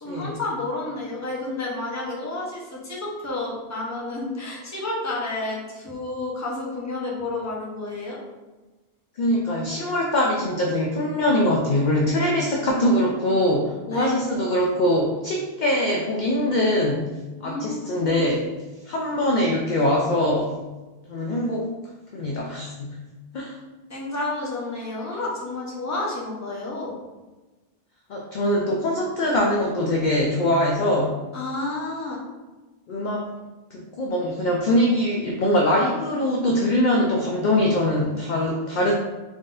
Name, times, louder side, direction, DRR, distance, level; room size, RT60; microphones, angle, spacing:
voice 1, 0.0-8.2 13.9-14.1 17.4-18.2 23.9-27.0 31.3-32.2, left 2 dB, 15° left, -4 dB, 0.8 m, -30 dB
voice 2, 9.2-17.1 17.4-18.5 18.9-20.6 21.1-21.7 22.1-23.0 23.3-23.6 28.1-31.2 32.9-33.3 33.7-38.9, left 1 dB, 55° left, -1 dB, 0.6 m, -22 dB
4.0 x 3.5 x 2.5 m, 1.2 s
omnidirectional pair, 1.1 m